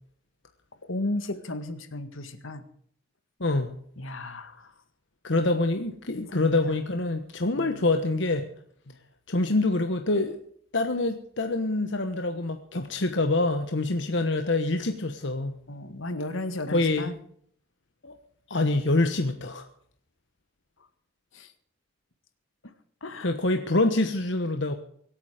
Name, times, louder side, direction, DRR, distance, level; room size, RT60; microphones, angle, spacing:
voice 1, 0.8-2.6 4.0-4.7 6.1-6.5 7.6-7.9 8.9-9.0 15.7-17.2 21.3-21.5 23.0-23.3, left 2 dB, 80° left, 10 dB, 1.7 m, -34 dB
voice 2, 3.4-3.7 5.2-8.4 9.3-10.4 10.7-15.6 16.7-17.1 18.0-18.2 18.5-19.7 23.2-24.7, left 2 dB, 60° left, 7 dB, 1.2 m, -26 dB
24.5 x 9.0 x 5.0 m, 0.62 s
head